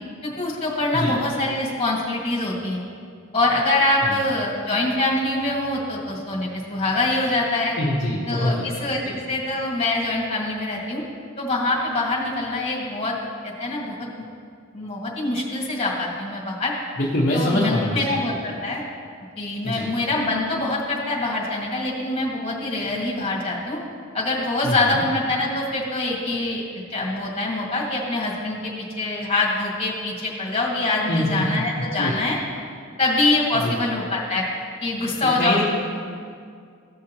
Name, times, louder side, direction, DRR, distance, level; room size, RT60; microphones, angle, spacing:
voice 1, 0.2-2.8 3.3-7.8 8.3-11.0 11.4-13.2 13.4-14.1 14.7-16.7 17.3-18.8 19.4-23.8 24.1-26.6 26.9-32.4 33.0-34.4 34.8-35.7, left 2 dB, 25° left, -4 dB, 1.8 m, -24 dB
voice 2, 7.8-9.1 17.0-18.0 19.6-19.9 24.6-25.0 31.1-31.6 32.0-32.1 33.6-33.8 35.4-35.6, left 1 dB, 45° left, -7 dB, 1.1 m, -24 dB
15.0 x 6.3 x 2.9 m, 2.2 s
head